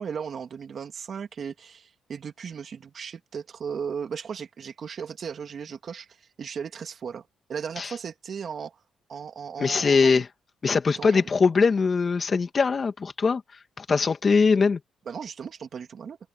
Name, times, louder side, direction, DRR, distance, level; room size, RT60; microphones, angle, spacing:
voice 1, 0.0-8.8 9.1-10.2 11.0-11.3 15.1-16.2, right 7 dB, 50° right, 2.3 m, -36 dB
voice 2, 9.6-10.3 10.6-13.4 13.8-14.8, left 5 dB, 40° left, 2.3 m, -21 dB
cardioid pair, 90°, 0 cm